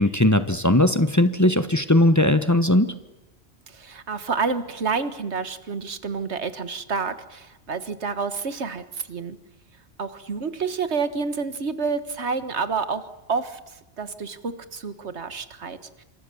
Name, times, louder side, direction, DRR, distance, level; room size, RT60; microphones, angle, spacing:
voice 1, 0.0-2.9, left 1 dB, 15° left, 10 dB, 1.1 m, -19 dB
voice 2, 3.7-9.4 10.0-13.0 13.3-16.0, right 5 dB, 85° right, 12 dB, 1.8 m, -29 dB
28.0 x 26.0 x 7.1 m, 1.0 s
omnidirectional pair, 1.1 m